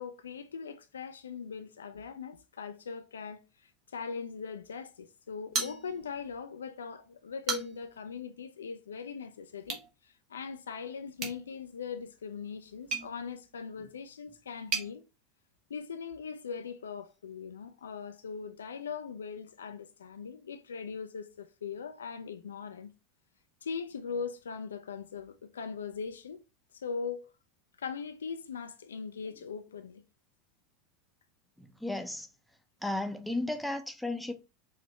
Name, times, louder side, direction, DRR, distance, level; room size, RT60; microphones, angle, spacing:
voice 1, 0.0-15.0 15.7-22.9 23.6-26.4 26.7-27.3 27.8-30.0, left 6 dB, 70° left, 0.4 m, -40 dB
sound 1, 5.5-6.3 6.7-6.8 7.2-8.0 9.6-9.9 11.2-14.9, right 5 dB, 45° right, 1.2 m, -38 dB
voice 2, 31.6-32.3 32.8-34.3, left 2 dB, ahead, 0.7 m, -34 dB
4.8 x 2.9 x 3.0 m
figure-of-eight pair, 75°, 0 cm